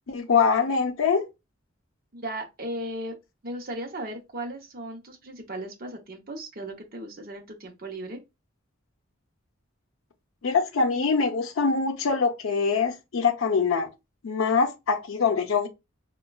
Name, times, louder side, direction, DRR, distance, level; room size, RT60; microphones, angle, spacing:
voice 1, 0.1-1.3 10.4-13.9 14.2-15.7, left 5 dB, 75° left, 0.5 m, -24 dB
voice 2, 2.1-3.1 3.4-8.2, right 1 dB, 45° right, 0.7 m, -36 dB
4.2 x 2.2 x 2.2 m
head